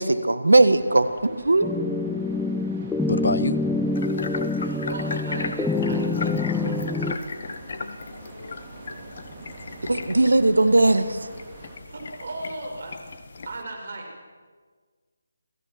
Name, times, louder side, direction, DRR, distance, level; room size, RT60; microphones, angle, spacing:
voice 1, 0.0-1.7 9.8-11.2, right 2 dB, 75° right, 11 dB, 1.9 m, -19 dB
sound 1, 0.8-11.8, right 3 dB, 25° right, 4.1 m, -46 dB
sound 2, 1.6-7.1, left 3 dB, 5° left, 0.8 m, -26 dB
voice 2, 3.1-3.6 7.8-8.6, left 3 dB, 65° left, 14 dB, 1.2 m, -28 dB
sound 3, 3.9-13.6, left 4 dB, 45° left, 1.9 m, -36 dB
voice 3, 4.5-7.1 11.8-13.1 13.5-14.2, right 2 dB, 55° right, 2 dB, 6.5 m, -37 dB
29.0 x 16.5 x 6.1 m, 1.5 s
figure-of-eight pair, 155°, 0 cm